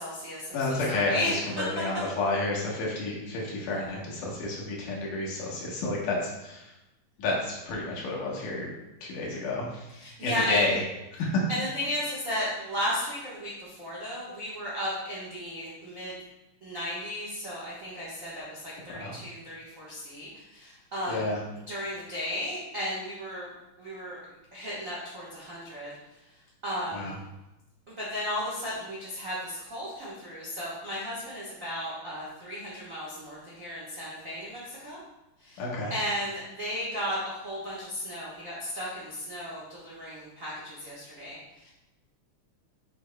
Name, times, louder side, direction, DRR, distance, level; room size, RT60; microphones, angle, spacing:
voice 1, 0.0-1.3 3.7-3.9 10.0-10.7 11.5-16.1 16.6-21.3 21.7-23.5 23.8-24.2 24.5-25.9 26.6-27.2 27.9-35.0 35.4-35.6 35.9-41.4 41.6-41.7, equal, 60° right, -7 dB, 0.8 m, -34 dB
voice 2, 0.5-6.7 7.2-8.7 9.0-9.9 10.2-10.8 11.1-11.4 19.0-19.2 21.1-21.4 26.9-27.1 35.6-35.9, left 2 dB, 80° left, -3 dB, 2.8 m, -30 dB
6.5 x 6.5 x 2.2 m, 0.94 s
omnidirectional pair, 3.6 m